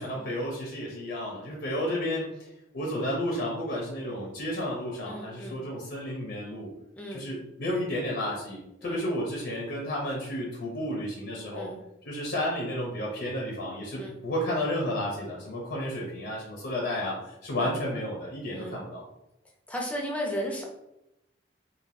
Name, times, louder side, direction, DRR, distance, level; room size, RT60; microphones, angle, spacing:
voice 1, 0.0-2.5 2.7-6.7 7.1-11.7 12.1-19.0, left 1 dB, 60° left, -2 dB, 0.6 m, -32 dB
voice 2, 5.0-5.6 6.9-7.3 8.8-9.0 11.5-11.8 14.0-14.2 17.6-17.7 18.5-18.8 19.7-20.6, equal, 5° left, -1 dB, 0.5 m, -35 dB
3.2 x 2.5 x 2.5 m, 0.88 s
head